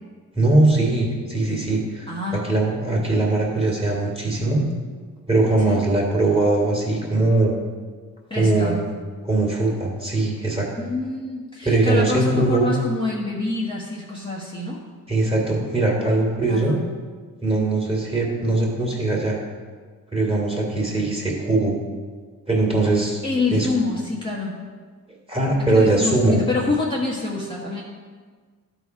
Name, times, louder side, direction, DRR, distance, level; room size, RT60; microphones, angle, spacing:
voice 1, 0.4-2.1 2.4-4.6 5.3-7.5 8.3-8.8 9.2-10.7 11.6-12.7 15.1-16.8 17.4-19.4 20.1-21.8 22.5-23.2 23.5-23.7 25.3-26.4, right 2 dB, 15° right, -2 dB, 2.6 m, -21 dB
voice 2, 2.1-2.5 5.7-5.8 8.3-8.8 10.8-14.8 16.5-16.8 23.2-24.6 25.7-27.8, left 3 dB, 15° left, -5 dB, 1.3 m, -26 dB
12.5 x 4.2 x 4.7 m, 1.5 s
cardioid pair, 80°, 34 cm